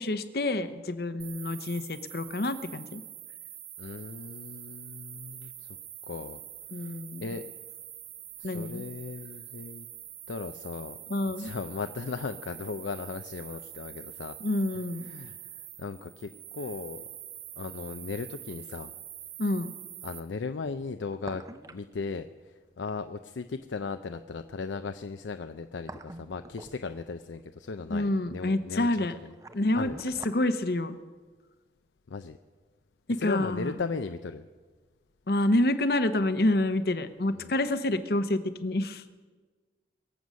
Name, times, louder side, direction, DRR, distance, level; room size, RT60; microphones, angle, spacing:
voice 1, 0.0-3.0 6.7-7.3 8.4-8.8 11.1-11.5 14.4-15.1 19.4-19.7 27.9-29.1 29.5-31.0 33.1-33.7 35.3-39.0, left 1 dB, 55° left, 12 dB, 0.8 m, -28 dB
sound 1, 1.2-20.2, right 11 dB, 50° right, 1.1 m, -45 dB
voice 2, 3.8-5.8 6.1-6.4 6.8-7.5 8.4-9.9 10.3-11.0 11.4-14.4 15.1-15.4 15.8-17.0 17.6-18.9 20.0-21.4 21.7-22.3 22.8-29.1 29.7-30.0 32.1-32.4 33.2-34.4 37.4-37.5, left 4 dB, 90° left, 9 dB, 0.5 m, -37 dB
sound 2, 17.7-17.8 20.9-21.9 22.2-22.3 25.4-27.2 28.9-30.4 30.7-30.8, right 2 dB, 20° right, 0.5 m, -46 dB
23.0 x 7.9 x 6.3 m, 1.4 s
head